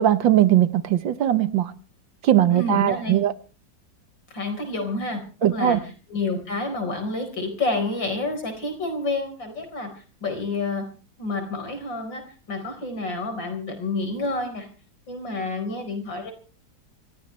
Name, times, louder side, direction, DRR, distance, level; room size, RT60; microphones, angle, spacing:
voice 1, 0.0-1.7 2.2-3.3 5.4-5.8, right 12 dB, 80° right, 1.8 m, -19 dB
voice 2, 2.5-3.2 4.3-5.8 6.1-9.9 10.2-10.8 11.2-12.2 12.5-14.7 15.1-16.3, left 2 dB, 80° left, 5.3 m, -29 dB
26.0 x 15.5 x 3.3 m
omnidirectional pair, 2.0 m